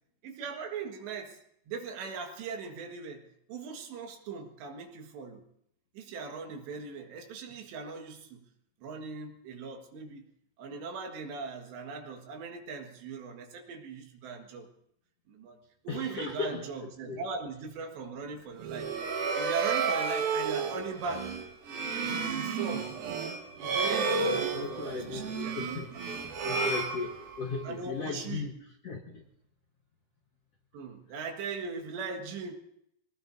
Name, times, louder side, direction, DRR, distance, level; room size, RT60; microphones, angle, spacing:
voice 1, 0.2-3.2 3.5-5.4 6.0-8.4 8.8-10.3 10.6-14.7 15.3-15.6 15.8-18.9 19.4-21.4 22.0-22.9 23.6-26.0 27.6-28.5 30.7-32.5, right 5 dB, 90° right, 3 dB, 4.0 m, -39 dB
voice 2, 15.9-16.7 17.1-17.2 24.5-25.9 26.4-28.5 28.8-29.2, left 4 dB, 75° left, 1 dB, 1.4 m, -36 dB
sound 1, 18.6-27.6, right 4 dB, 65° right, 3.1 m, -32 dB
24.5 x 18.5 x 2.7 m, 0.75 s
omnidirectional pair, 4.8 m